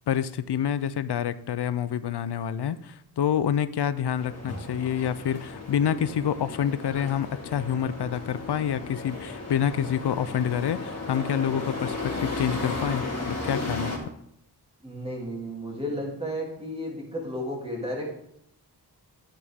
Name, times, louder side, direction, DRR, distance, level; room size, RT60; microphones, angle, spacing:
voice 1, 0.1-13.9, left 9 dB, 80° left, 15 dB, 0.6 m, -27 dB
sound 1, 4.2-14.0, left 2 dB, 40° left, 2.2 m, -34 dB
voice 2, 14.8-18.2, equal, 15° right, -2 dB, 3.0 m, -33 dB
11.5 x 8.4 x 3.6 m, 0.73 s
wide cardioid pair, 95°, 40 cm